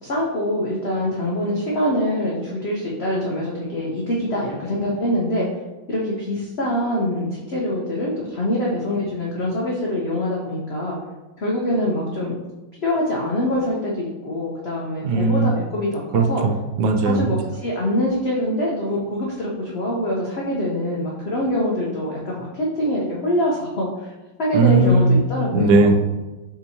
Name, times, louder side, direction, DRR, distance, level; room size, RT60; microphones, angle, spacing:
voice 1, 0.0-5.5 5.9-11.0 11.4-12.4 12.8-16.4 17.0-24.1 24.4-25.9, left 1 dB, 90° left, -4 dB, 0.5 m, -24 dB
voice 2, 15.0-15.5 16.1-17.3 24.5-25.2 25.5-25.9, right 3 dB, 85° right, 5 dB, 1.4 m, -17 dB
6.6 x 2.9 x 2.8 m, 1.1 s
omnidirectional pair, 2.1 m